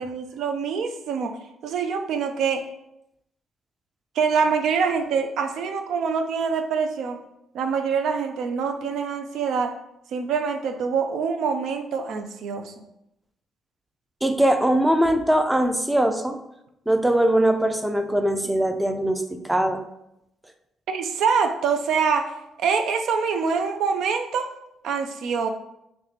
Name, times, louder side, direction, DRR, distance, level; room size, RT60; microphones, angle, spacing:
voice 1, 0.0-1.4 1.6-2.6 4.2-7.2 7.5-9.8 10.1-12.7 20.9-24.5 24.8-25.5, right 6 dB, 75° right, 7 dB, 0.4 m, -25 dB
voice 2, 14.2-16.4 16.9-19.8, right 1 dB, 10° right, 6 dB, 0.4 m, -21 dB
3.2 x 3.0 x 4.0 m, 0.82 s
cardioid pair, 90°, 0 cm